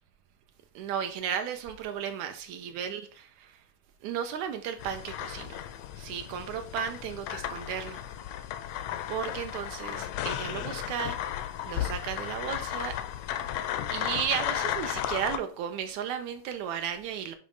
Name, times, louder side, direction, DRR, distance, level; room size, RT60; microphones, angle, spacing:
voice 1, 0.8-3.7 4.0-5.7 6.0-8.0 9.1-13.0 13.9-17.4, right 8 dB, 80° right, 1.9 m, -34 dB
sound 1, 4.8-15.4, left 11 dB, 80° left, 1.6 m, -34 dB
8.9 x 3.1 x 5.2 m
omnidirectional pair, 3.5 m